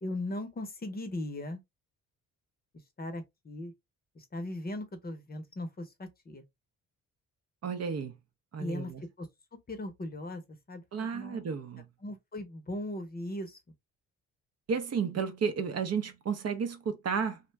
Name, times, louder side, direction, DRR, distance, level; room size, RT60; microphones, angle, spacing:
voice 1, 0.0-1.6 3.0-3.7 4.2-6.4 8.6-8.9 9.2-9.3 9.7-11.4 12.0-13.6, left 1 dB, 25° left, 0.7 m, -38 dB
voice 2, 7.6-8.1 8.5-9.0 10.9-11.9 14.7-17.4, right 6 dB, 45° right, 0.6 m, -32 dB
2.5 x 2.1 x 3.2 m
supercardioid pair, 70°, 34 cm